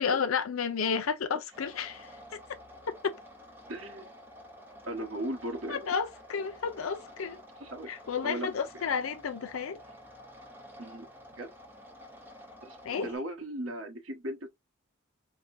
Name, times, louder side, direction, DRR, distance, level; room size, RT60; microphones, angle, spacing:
voice 1, 0.0-2.4 3.0-3.1 5.7-7.4 7.9-9.8 12.8-13.1, left 6 dB, 90° left, 0.5 m, -31 dB
sound 1, 1.5-13.2, equal, 10° right, 0.8 m, -50 dB
voice 2, 3.7-4.1 4.9-5.8 7.6-7.9 8.2-8.5 10.8-11.0 11.4-11.5 12.6-14.5, right 1 dB, 85° right, 1.4 m, -37 dB
4.8 x 2.2 x 2.6 m
head